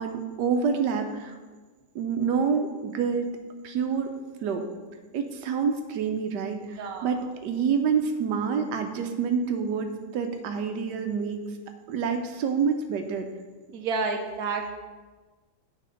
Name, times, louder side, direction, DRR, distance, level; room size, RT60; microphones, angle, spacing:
voice 1, 0.0-1.4 1.9-3.3 3.6-4.7 5.1-11.4 11.9-13.3, right 6 dB, 90° right, 6 dB, 1.3 m, -27 dB
voice 2, 13.7-14.7, right 4 dB, 65° right, 3 dB, 1.3 m, -30 dB
9.2 x 4.2 x 5.0 m, 1.3 s
omnidirectional pair, 1.8 m